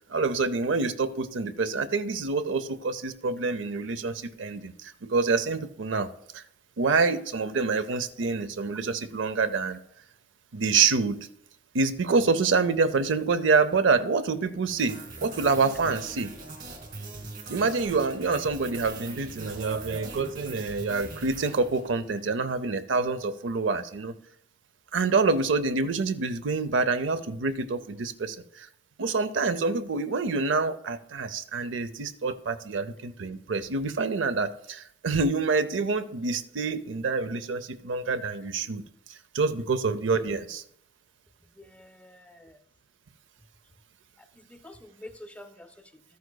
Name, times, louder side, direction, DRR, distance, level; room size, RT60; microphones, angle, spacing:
voice 1, 0.1-6.4 6.8-9.8 10.5-11.3 11.7-16.3 17.5-24.1 24.9-28.7 29.0-38.8 39.1-40.6, right 4 dB, 80° right, 0.5 m, -27 dB
sound 1, 14.7-22.2, right 2 dB, 45° right, 2.1 m, -42 dB
voice 2, 41.5-42.6 44.4-46.0, left 1 dB, 5° left, 0.4 m, -48 dB
13.0 x 9.4 x 2.2 m
head